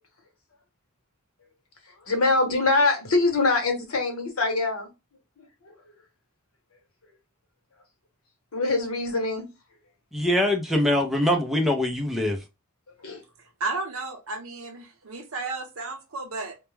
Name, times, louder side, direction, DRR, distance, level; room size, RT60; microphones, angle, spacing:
voice 1, 2.1-4.9 5.4-5.7 8.5-9.5 13.0-13.2, left 3 dB, 75° left, 1.0 m, -24 dB
voice 2, 10.1-12.4, left 1 dB, ahead, 0.5 m, -23 dB
voice 3, 13.6-16.6, right 3 dB, 65° right, 0.7 m, -33 dB
2.2 x 2.1 x 3.0 m
head